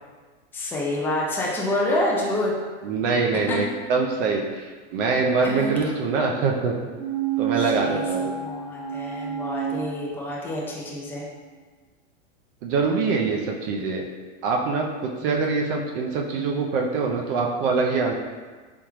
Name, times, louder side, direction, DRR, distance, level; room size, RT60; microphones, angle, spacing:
voice 1, 0.5-2.5 3.5-3.6 5.4-5.7 7.7-11.2 15.3-15.5, left 1 dB, 5° left, -4 dB, 0.4 m, -28 dB
voice 2, 2.8-6.7 7.4-8.3 12.6-14.1 14.4-18.1, right 4 dB, 50° right, 1 dB, 0.5 m, -24 dB
sound 1, 7.0-10.7 11.1-11.2, right 7 dB, 75° right, 1.3 m, -30 dB
3.5 x 3.5 x 3.0 m, 1.4 s
supercardioid pair, 135°, 36 cm